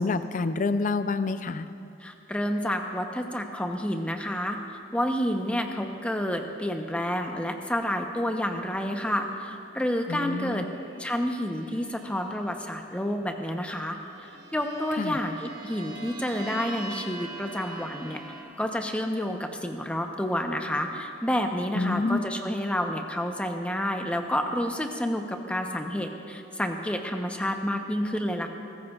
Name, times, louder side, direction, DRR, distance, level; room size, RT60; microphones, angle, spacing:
voice 1, 0.0-1.7 10.1-10.6 15.0-15.2 21.8-22.2, left 3 dB, 45° left, 11 dB, 0.5 m, -27 dB
voice 2, 2.0-10.7 11.0-18.2 18.6-28.5, equal, 5° left, 4 dB, 0.8 m, -29 dB
sound 1, 10.0-12.8 13.6-18.4, right 3 dB, 75° right, 3.1 m, -44 dB
20.0 x 15.0 x 2.4 m, 2.6 s
head